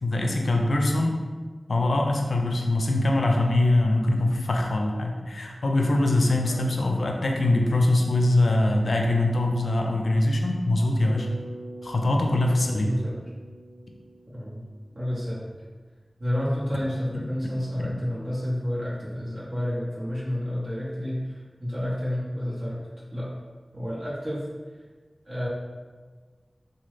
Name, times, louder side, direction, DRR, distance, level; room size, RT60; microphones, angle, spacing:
voice 1, 0.0-1.2 1.7-11.3 11.8-12.9 17.1-17.2, left 2 dB, 85° left, 2 dB, 0.3 m, -23 dB
Bass guitar, 11.1-15.2, right 2 dB, 85° right, 0.5 m, -44 dB
voice 2, 12.6-13.2 14.3-14.6 14.9-15.5 16.2-21.2 21.6-22.8 23.1-23.3 23.7-24.4 25.3-25.5, left 1 dB, 55° right, -8 dB, 0.9 m, -30 dB
3.0 x 2.2 x 3.1 m, 1.4 s
wide cardioid pair, 60°, 0 cm